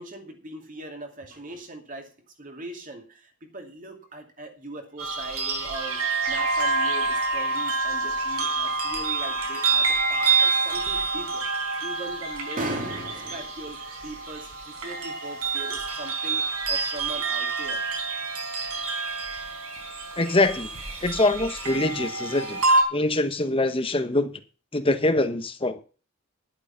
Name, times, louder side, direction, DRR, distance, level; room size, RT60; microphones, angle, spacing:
voice 1, 0.0-2.1 2.4-11.5 11.8-17.8, right 1 dB, 35° right, 4 dB, 2.5 m, -39 dB
sound 1, 5.0-22.8, right 3 dB, 90° right, 4.2 m, -27 dB
voice 2, 20.2-20.7 21.0-22.6 22.9-24.3 24.7-25.8, left 2 dB, 25° left, 9 dB, 1.1 m, -24 dB
11.0 x 8.8 x 5.7 m, 0.36 s
head